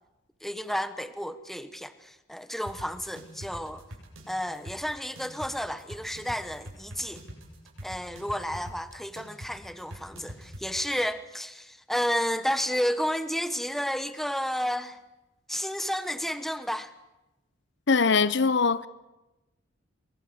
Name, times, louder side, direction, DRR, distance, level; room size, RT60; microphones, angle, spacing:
voice 1, 0.4-3.8 4.3-7.2 7.8-15.0 15.5-16.9, equal, ahead, 1.1 m, -31 dB
sound 1, 2.7-10.7, right 1 dB, 85° right, 7.6 m, -44 dB
voice 2, 17.9-18.9, left 5 dB, 60° left, 0.9 m, -22 dB
26.0 x 23.0 x 8.0 m
head